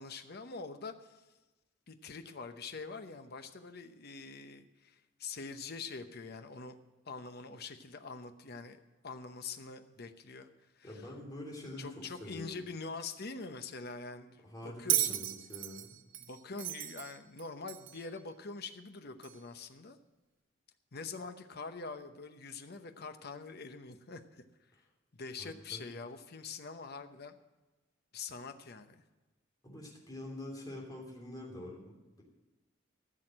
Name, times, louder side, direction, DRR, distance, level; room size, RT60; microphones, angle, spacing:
voice 1, 0.0-1.3 1.9-6.8 7.1-8.8 9.0-11.1 11.8-15.2 16.2-20.0 20.9-24.4 25.1-27.4 28.1-29.0, left 4 dB, 55° left, 8 dB, 0.9 m, -45 dB
voice 2, 10.8-12.7 14.4-16.0 25.4-25.8 29.6-32.2, left 1 dB, 20° left, -1 dB, 3.1 m, -46 dB
Bell, 14.9-18.1 19.2-19.3, right 13 dB, 75° right, 0.7 m, -35 dB
15.0 x 6.5 x 7.6 m, 1.1 s
head